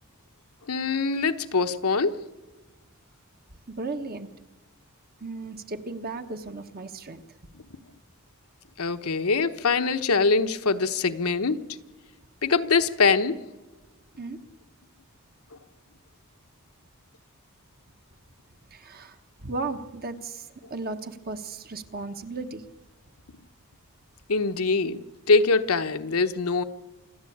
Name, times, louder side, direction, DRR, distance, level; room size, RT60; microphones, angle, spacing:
voice 1, 0.7-2.2 8.8-11.6 12.4-13.4 24.3-25.0 25.3-26.6, left 4 dB, 75° left, 8 dB, 1.0 m, -23 dB
voice 2, 3.7-4.3 5.2-7.2 14.2-14.4 18.7-22.6, right 3 dB, 45° right, 8 dB, 1.2 m, -35 dB
27.0 x 11.5 x 8.6 m, 1.2 s
head